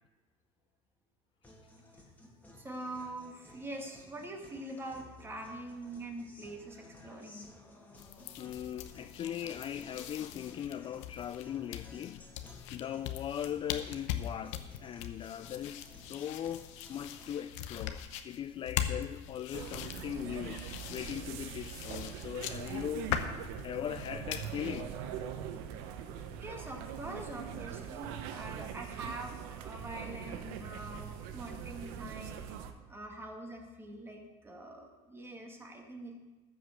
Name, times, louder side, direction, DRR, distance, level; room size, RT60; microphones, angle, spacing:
Guitar, 1.4-17.4, left 2 dB, 10° left, 2.2 m, -56 dB
voice 1, 2.5-7.5 22.5-22.6 26.4-36.2, right 1 dB, 15° right, 2.1 m, -44 dB
sound 1, 8.0-24.8, left 10 dB, 80° left, 0.9 m, -41 dB
voice 2, 8.4-12.3 12.7-23.1 23.6-24.9, left 10 dB, 35° left, 0.4 m, -39 dB
sound 2, 19.5-32.7, right 9 dB, 75° right, 1.0 m, -42 dB
14.0 x 5.1 x 6.6 m
supercardioid pair, 100°, 15 cm